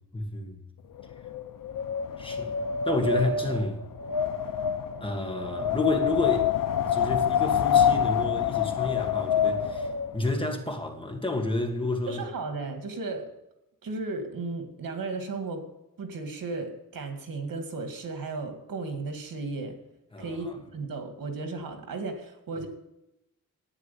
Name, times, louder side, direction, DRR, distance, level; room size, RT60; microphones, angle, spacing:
voice 1, 0.1-0.6 2.2-2.5 2.9-3.8 5.0-6.5 6.8-9.9 10.1-12.2 20.1-20.6 22.6-22.7, left 2 dB, 15° left, 1.8 m, -30 dB
Wind, 1.0-10.2, left 8 dB, 75° left, 0.8 m, -27 dB
voice 2, 12.1-13.3 13.8-15.7 16.0-19.8 20.2-20.5 20.7-22.7, right 3 dB, 85° right, 2.2 m, -35 dB
11.5 x 9.2 x 8.3 m
wide cardioid pair, 155°, 33 cm